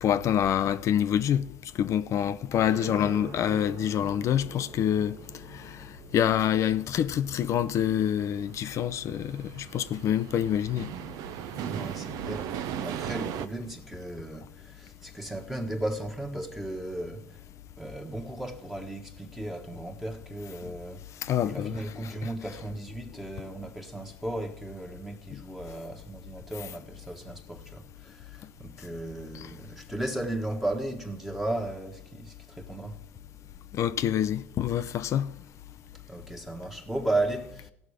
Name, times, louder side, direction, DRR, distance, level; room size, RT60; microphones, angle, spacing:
voice 1, 0.0-1.5 1.8-5.2 5.5-5.9 6.1-10.9 21.2-22.1 25.3-25.4 29.3-29.5 33.7-35.3, left 10 dB, 45° left, 0.5 m, -26 dB
sound 1, 2.6-9.9, right 3 dB, 45° right, 1.2 m, -46 dB
sound 2, 6.0-13.5, right 9 dB, 60° right, 0.8 m, -38 dB
voice 2, 11.6-17.4 17.8-33.0 36.1-37.7, right 1 dB, 5° right, 1.4 m, -35 dB
16.5 x 6.1 x 4.9 m
supercardioid pair, 95°, 7 cm